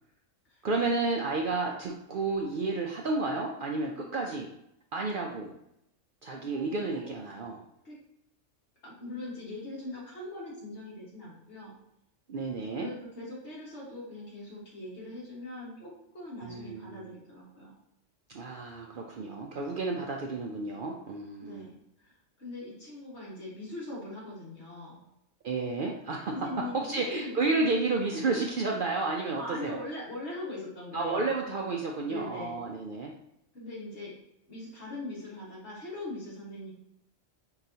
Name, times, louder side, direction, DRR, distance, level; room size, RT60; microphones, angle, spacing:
voice 1, 0.6-4.5 4.9-5.5 6.2-7.6 12.3-12.9 16.4-17.1 18.3-21.7 25.4-26.3 26.7-29.8 30.9-33.1, right 3 dB, 60° right, 0 dB, 0.6 m, -31 dB
voice 2, 6.5-7.2 7.8-8.0 8.8-11.7 12.7-17.7 19.9-20.2 21.4-21.8 22.0-22.1 22.4-25.1 26.2-27.4 29.4-31.3 32.1-32.6 33.5-34.1 34.5-36.7, left 2 dB, 65° left, -5 dB, 1.8 m, -41 dB
4.6 x 3.9 x 2.7 m, 0.79 s
omnidirectional pair, 1.3 m